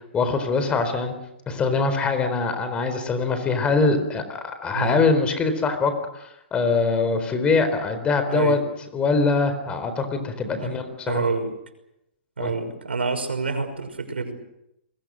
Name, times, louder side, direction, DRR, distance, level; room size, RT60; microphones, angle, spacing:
voice 1, 0.1-1.1 1.5-5.9 6.5-8.6 8.9-11.2 12.4-12.5, left 4 dB, 20° left, 8 dB, 4.2 m, -23 dB
voice 2, 8.3-8.6 10.6-10.8 11.1-11.5 12.4-14.3, right 4 dB, 85° right, 6 dB, 5.9 m, -27 dB
29.5 x 22.0 x 6.5 m, 0.83 s
hypercardioid pair, 125°, 6 cm